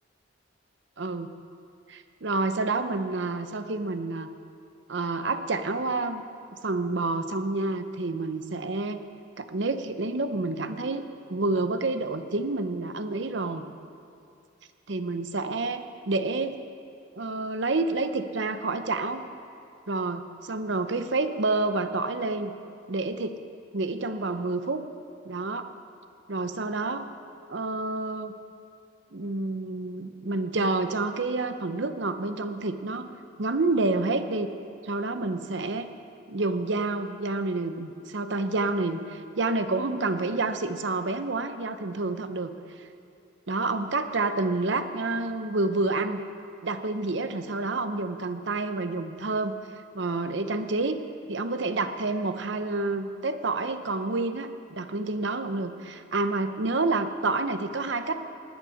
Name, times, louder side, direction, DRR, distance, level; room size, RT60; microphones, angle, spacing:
voice 1, 1.0-1.3 1.9-4.3 4.9-6.2 6.6-9.0 9.4-13.6 14.9-16.6 17.2-19.3 19.9-22.5 22.9-23.4 23.7-24.9 25.2-25.7 26.3-27.1 27.5-28.3 29.1-33.1 33.4-34.5 34.8-35.9 36.3-42.5 42.8-42.9 43.5-46.2 46.6-49.6 49.9-51.0 51.3-58.2, right 3 dB, 65° right, 9 dB, 0.8 m, -28 dB
19.0 x 8.3 x 6.5 m, 2.5 s
head